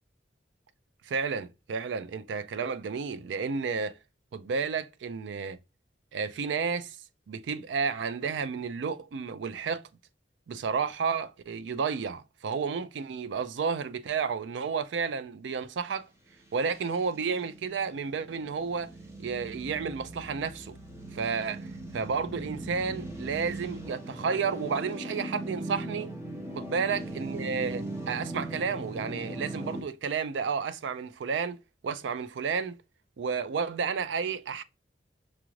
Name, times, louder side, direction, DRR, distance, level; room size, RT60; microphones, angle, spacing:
voice 1, 1.0-4.0 4.3-5.6 6.1-7.0 7.3-9.9 10.5-16.1 16.5-18.9 19.2-20.8 21.1-26.1 26.6-31.6 31.8-32.8 33.2-34.6, right 5 dB, 80° right, 0.4 m, -31 dB
sound 1, 16.5-29.8, right 1 dB, 15° right, 1.0 m, -39 dB
5.9 x 2.5 x 3.0 m
head